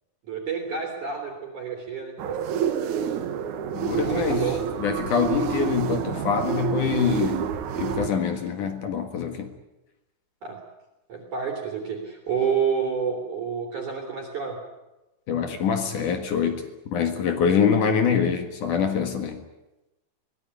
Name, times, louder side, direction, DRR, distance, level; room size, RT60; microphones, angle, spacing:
voice 1, 0.3-2.8 4.1-4.6 8.3-8.4 10.4-10.6 11.1-14.6, right 6 dB, 45° right, 1 dB, 4.0 m, -29 dB
sound 1, 2.2-8.1, right 9 dB, 70° right, 1.9 m, -28 dB
voice 2, 3.7-4.4 4.8-7.5 7.8-9.5 15.3-19.4, left 7 dB, 55° left, 6 dB, 2.7 m, -25 dB
22.5 x 17.5 x 9.8 m, 1.0 s
omnidirectional pair, 5.2 m